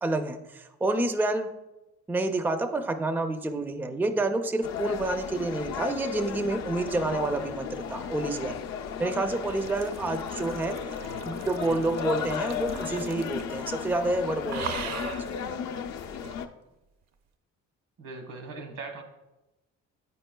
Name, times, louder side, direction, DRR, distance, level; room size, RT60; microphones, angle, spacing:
voice 1, 0.0-1.5 2.1-8.6 9.0-11.0 11.2-15.4, right 2 dB, 5° right, 8 dB, 0.4 m, -29 dB
sound 1, 4.6-16.5, left 7 dB, 65° left, 0.5 m, -34 dB
sound 2, 7.9-13.6 13.9-14.1 14.5-15.3 16.2-16.4, right 7 dB, 60° right, 0.6 m, -41 dB
voice 2, 11.0-11.8 18.0-19.0, right 3 dB, 80° right, 4 dB, 1.2 m, -41 dB
8.5 x 5.4 x 2.2 m, 0.99 s
cardioid pair, 90°, 30 cm